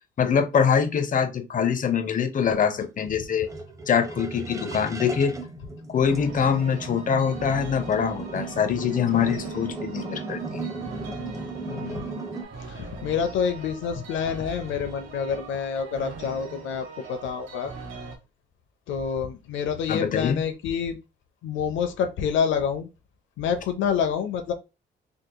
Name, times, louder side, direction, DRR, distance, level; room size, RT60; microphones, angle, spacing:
voice 1, 0.2-3.5 3.9-5.3 5.9-10.7 19.9-20.4, left 7 dB, 40° left, 0.7 m, -24 dB
sound 1, 2.8-12.4, right 3 dB, 15° right, 0.7 m, -36 dB
sound 2, 6.0-18.2, right 4 dB, 80° right, 1.2 m, -41 dB
voice 2, 11.7-12.1 12.6-17.7 18.9-21.0 21.4-22.9 23.4-24.5, left 7 dB, 80° left, 0.5 m, -27 dB
3.6 x 2.7 x 2.2 m
cardioid pair, 90°, 20 cm